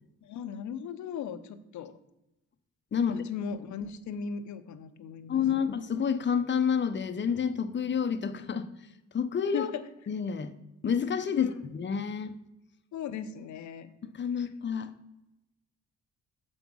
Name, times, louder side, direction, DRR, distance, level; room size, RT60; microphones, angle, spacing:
voice 1, 0.2-1.9 3.1-5.7 9.5-9.8 11.3-11.5 12.9-13.9, left 7 dB, 70° left, 10 dB, 0.8 m, -37 dB
voice 2, 2.9-3.2 5.3-8.7 9.1-9.7 10.1-10.5 10.8-12.3 14.1-14.9, left 7 dB, 40° left, 10 dB, 0.7 m, -29 dB
7.0 x 5.4 x 6.1 m, 0.92 s
cardioid pair, 90°, 30 cm